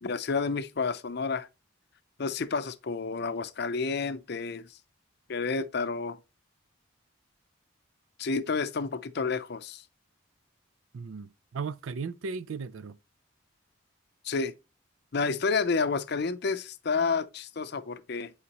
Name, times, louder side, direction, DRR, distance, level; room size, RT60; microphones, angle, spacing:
voice 1, 0.0-1.5 2.2-4.7 5.3-6.2 8.2-9.8 14.2-14.5 15.1-18.3, left 4 dB, 55° left, 0.5 m, -30 dB
voice 2, 10.9-13.0, right 5 dB, 80° right, 0.4 m, -36 dB
9.7 x 5.0 x 2.9 m
head